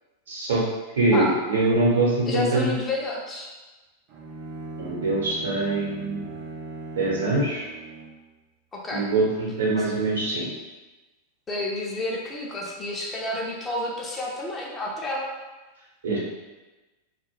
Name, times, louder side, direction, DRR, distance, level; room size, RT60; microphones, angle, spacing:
voice 1, 0.3-0.6 1.0-2.7 4.8-6.2 6.9-7.7 8.9-10.5 16.0-16.2, right 2 dB, 65° right, -4 dB, 0.9 m, -23 dB
voice 2, 2.3-3.5 8.7-9.1 11.5-15.3, left 1 dB, 20° left, -3 dB, 0.5 m, -30 dB
Bowed string instrument, 4.1-8.3, right 2 dB, 40° right, 0.5 m, -39 dB
2.3 x 2.2 x 3.1 m, 1.2 s
figure-of-eight pair, 90°, 0 cm